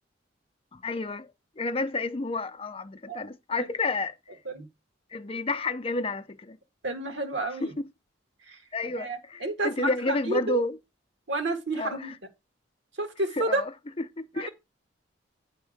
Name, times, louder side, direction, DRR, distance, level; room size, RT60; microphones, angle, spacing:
voice 1, 0.7-1.3 1.6-4.1 5.1-6.6 7.8-7.9 8.7-10.8 11.8-12.1 13.4-13.7 14.2-14.5, left 3 dB, 30° left, 0.6 m, -30 dB
voice 2, 6.8-7.7 8.5-8.6 9.0-10.6 11.3-12.1 13.0-13.6 14.4-14.5, right 2 dB, 70° right, 1.7 m, -30 dB
9.4 x 3.6 x 6.4 m
head